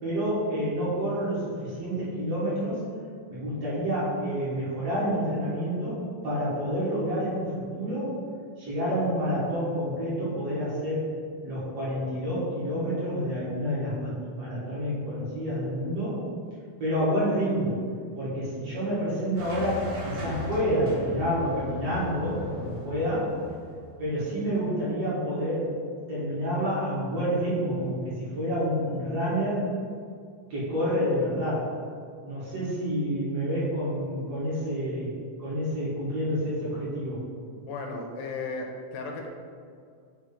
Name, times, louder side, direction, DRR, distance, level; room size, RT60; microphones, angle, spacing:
voice 1, 0.0-2.8 3.3-8.2 8.6-11.0 11.4-16.2 16.8-17.8 18.2-23.3 24.0-25.6 26.1-29.6 30.5-31.7 32.2-35.1 35.4-37.2, equal, 50° right, -9 dB, 2.3 m, -28 dB
sound 1, 19.4-24.0, left 1 dB, 75° right, 0.8 m, -38 dB
voice 2, 37.6-39.3, left 3 dB, 85° left, 1 dB, 2.4 m, -35 dB
7.0 x 3.1 x 4.9 m, 2.2 s
omnidirectional pair, 4.0 m